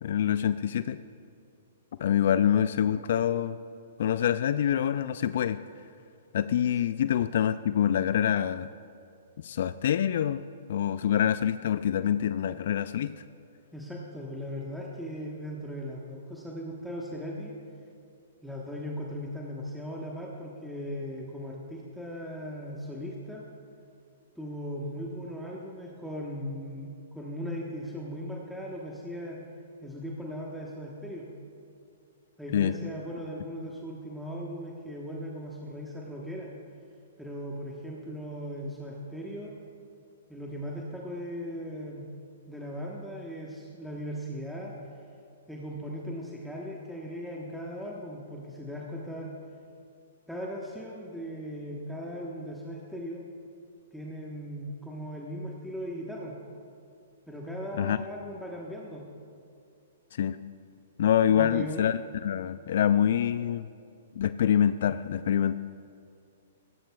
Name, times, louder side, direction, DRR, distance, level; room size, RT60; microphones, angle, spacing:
voice 1, 0.0-1.0 2.0-3.6 4.0-5.6 6.3-8.7 9.4-10.4 10.7-13.2 32.5-32.8 57.8-58.0 60.1-60.4 61.0-63.7 64.2-65.6, left 9 dB, 60° left, 13 dB, 0.3 m, -26 dB
voice 2, 13.7-17.5 18.4-23.4 24.4-29.4 29.8-31.3 32.4-36.5 37.2-39.5 40.3-42.1 42.5-44.7 45.5-49.3 50.3-53.2 53.9-56.4 57.3-59.0 61.3-61.9, equal, ahead, -4 dB, 1.2 m, -38 dB
18.0 x 15.0 x 2.3 m, 2.4 s
hypercardioid pair, 125°, 0 cm